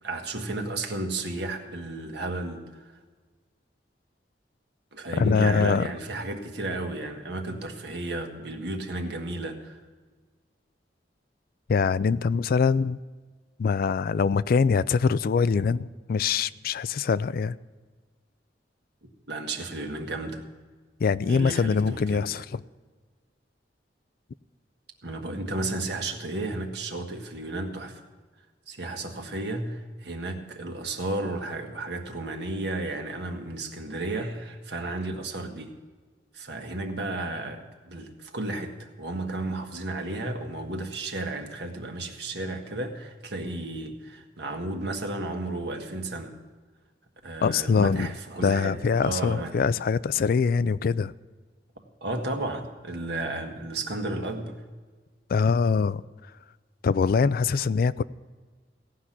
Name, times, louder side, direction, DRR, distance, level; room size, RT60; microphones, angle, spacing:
voice 1, 0.0-2.9 4.9-9.8 19.3-20.4 21.2-22.3 25.0-28.0 28.7-35.8 36.3-46.3 47.2-49.6 52.0-54.6, right 2 dB, 70° right, 1.6 m, -33 dB
voice 2, 5.2-5.9 11.7-13.0 13.6-17.5 21.0-22.6 47.4-48.1 48.4-51.1 55.3-56.0 56.8-58.0, left 5 dB, 55° left, 0.4 m, -23 dB
17.0 x 5.9 x 9.8 m
head